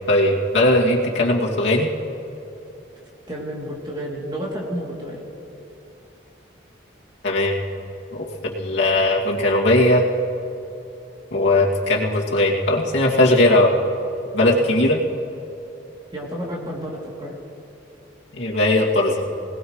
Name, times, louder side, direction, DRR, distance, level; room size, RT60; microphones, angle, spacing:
voice 1, 0.1-1.9 7.2-7.6 8.1-10.0 11.3-13.7 14.3-15.0 18.3-19.2, left 1 dB, 75° left, -4 dB, 2.5 m, -18 dB
voice 2, 3.3-5.2 14.4-14.6 16.1-17.4, equal, 25° right, -3 dB, 2.9 m, -31 dB
22.5 x 19.0 x 3.2 m, 2.9 s
head